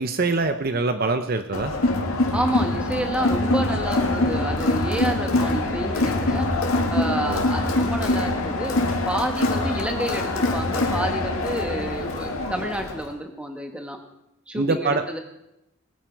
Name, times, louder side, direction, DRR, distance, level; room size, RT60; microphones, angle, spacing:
voice 1, 0.0-1.7 7.3-7.5 14.5-15.0, right 3 dB, 45° right, 8 dB, 0.7 m, -24 dB
Crowd, 1.5-13.1, left 2 dB, 90° left, 1.9 m, -24 dB
voice 2, 2.3-6.5 6.9-14.0 14.5-15.2, right 1 dB, 5° right, 4 dB, 1.4 m, -29 dB
19.5 x 9.1 x 4.6 m, 0.87 s
head